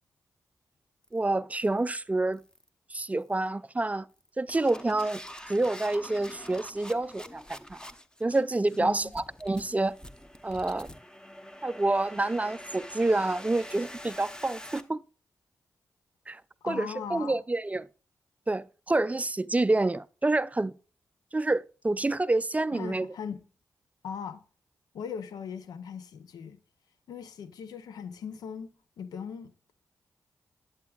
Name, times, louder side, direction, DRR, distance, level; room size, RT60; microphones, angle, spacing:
sound 1, 1.0-1.2 1.6-1.9 2.3-2.7 3.2-3.5 4.1-14.8, left 1 dB, 10° left, 1.0 m, -46 dB
voice 1, 1.1-2.4 2.9-4.1 4.4-5.2 5.5-7.8 8.2-10.0 10.4-10.9 11.6-15.0 16.3-17.9 18.5-20.7 21.3-23.1, right 2 dB, 20° right, 0.4 m, -28 dB
voice 2, 16.6-17.4 22.7-23.4 24.0-24.4 24.9-26.6 27.1-28.7 29.0-29.5, left 7 dB, 85° left, 0.6 m, -39 dB
11.5 x 8.1 x 2.4 m
supercardioid pair, 40°, 7 cm